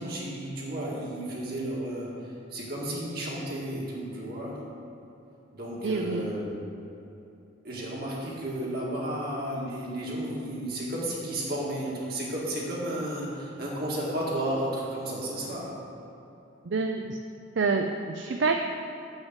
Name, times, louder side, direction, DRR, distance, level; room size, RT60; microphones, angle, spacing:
voice 1, 0.0-2.1 2.5-4.6 5.5-6.6 7.6-15.7, right 1 dB, 50° right, -4 dB, 2.0 m, -33 dB
voice 2, 5.8-6.3 16.7-17.2 17.6-18.5, right 4 dB, 65° right, 4 dB, 0.4 m, -27 dB
7.2 x 6.5 x 7.4 m, 2.8 s
head